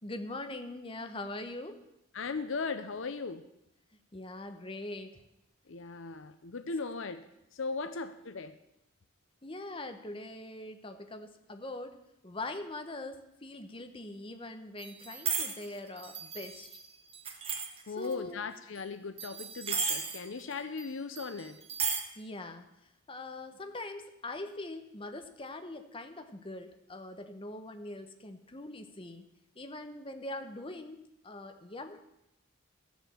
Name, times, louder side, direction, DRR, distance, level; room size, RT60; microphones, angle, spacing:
voice 1, 0.0-1.8 4.1-5.2 9.4-12.0 12.2-16.7 17.9-18.4 22.2-22.7 23.1-29.2 29.6-31.0 31.2-32.0, left 2 dB, 25° left, 7 dB, 0.9 m, -42 dB
voice 2, 2.1-3.5 5.7-8.6 17.9-21.6, left 4 dB, 65° left, 11 dB, 0.6 m, -38 dB
sound 1, 14.8-15.7 16.0-18.1 19.2-20.5 20.8-20.9 21.2-22.0, right 6 dB, 30° right, 1.2 m, -34 dB
14.0 x 7.2 x 7.4 m, 0.86 s
head